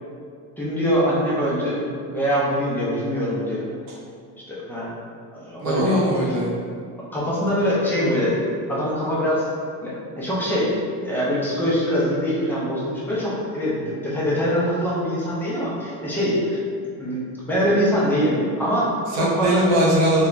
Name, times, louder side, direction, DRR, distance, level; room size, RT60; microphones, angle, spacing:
voice 1, 0.6-1.8 2.1-3.6 4.4-4.9 5.3-5.9 7.1-8.4 8.7-9.5 9.8-10.7 11.0-16.6 17.0-19.6, equal, 5° left, -7 dB, 0.3 m, -23 dB
voice 2, 5.6-6.5 19.1-20.3, right 1 dB, 80° right, -3 dB, 0.9 m, -20 dB
3.6 x 2.2 x 2.4 m, 2.3 s
cardioid pair, 145°, 40 cm